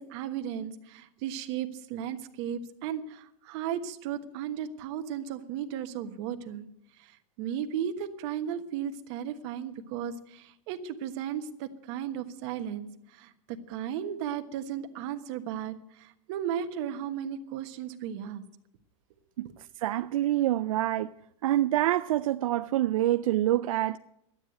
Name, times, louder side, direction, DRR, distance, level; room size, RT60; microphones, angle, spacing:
voice 1, 0.0-6.6 7.0-18.4 19.4-19.5, right 9 dB, 55° right, 1.3 m, -35 dB
voice 2, 19.8-21.1 21.4-24.0, right 14 dB, 80° right, 0.5 m, -26 dB
12.5 x 9.6 x 8.0 m
supercardioid pair, 140°, 17 cm